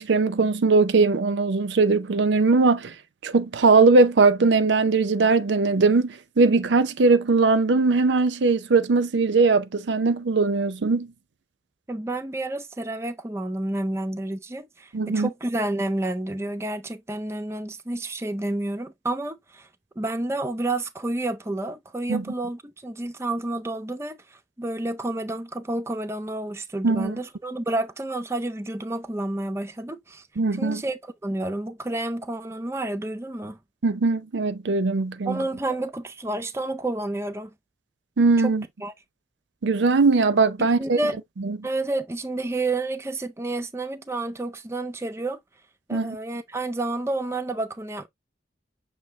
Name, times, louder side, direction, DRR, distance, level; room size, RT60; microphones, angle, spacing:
voice 1, 0.0-2.9 3.2-11.1 14.9-15.3 22.1-22.2 26.8-27.2 30.4-30.8 33.8-35.4 38.2-38.6 39.6-41.0 41.4-41.6 45.9-46.2, right 3 dB, 80° right, 0.5 m, -20 dB
voice 2, 11.9-19.7 20.0-30.2 30.5-33.6 35.3-37.5 38.4-38.5 38.8-38.9 40.8-41.2 41.6-45.4 45.9-48.1, right 2 dB, 15° right, 0.4 m, -30 dB
6.4 x 2.6 x 3.0 m
head